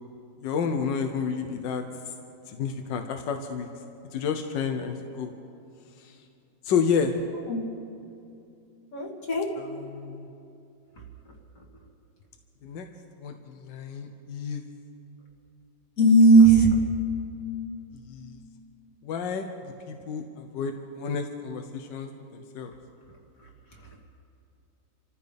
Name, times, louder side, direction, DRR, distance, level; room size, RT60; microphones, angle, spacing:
voice 1, 0.4-1.8 2.5-3.7 4.1-5.3 6.0-6.1 6.6-7.1 9.6-10.3 12.6-12.9 13.2-14.6 18.1-18.4 19.0-22.7, left 6 dB, 75° left, 5 dB, 1.5 m, -30 dB
voice 2, 8.9-9.5 16.0-16.7, right 2 dB, 45° left, -1 dB, 2.7 m, -17 dB
28.5 x 14.5 x 3.5 m, 2.7 s
omnidirectional pair, 2.0 m